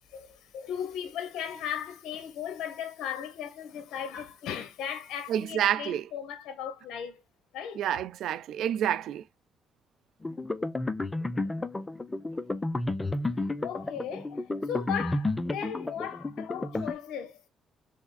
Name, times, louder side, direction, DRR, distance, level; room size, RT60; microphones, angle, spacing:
voice 1, 0.1-7.2 7.5-7.8 13.6-17.4, left 9 dB, 80° left, 0.7 m, -37 dB
voice 2, 5.3-6.1 7.8-9.2, right 10 dB, 80° right, 0.4 m, -28 dB
sound 1, 10.2-16.9, left 2 dB, 20° left, 0.6 m, -32 dB
3.5 x 3.4 x 3.9 m
cardioid pair, 90°, 0 cm